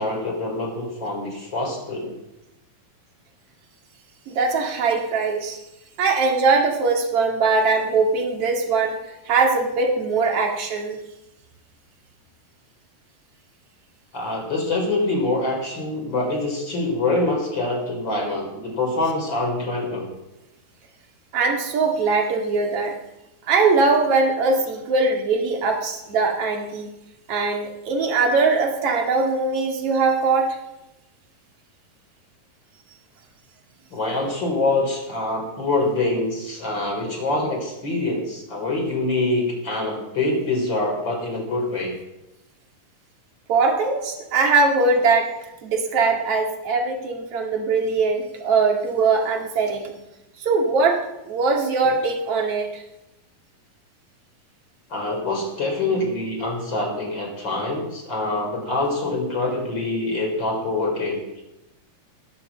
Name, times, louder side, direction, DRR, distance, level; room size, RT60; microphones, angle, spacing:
voice 1, 0.0-2.1 14.1-20.1 33.9-42.0 54.9-61.4, left 2 dB, 35° left, 1 dB, 4.2 m, -25 dB
voice 2, 4.3-5.6 6.0-9.0 9.3-11.0 21.3-23.0 23.5-26.9 27.3-30.6 43.5-45.3 45.6-49.9 50.4-52.8, right 4 dB, 50° right, 2 dB, 2.7 m, -21 dB
20.0 x 7.0 x 7.1 m, 0.94 s
omnidirectional pair, 3.9 m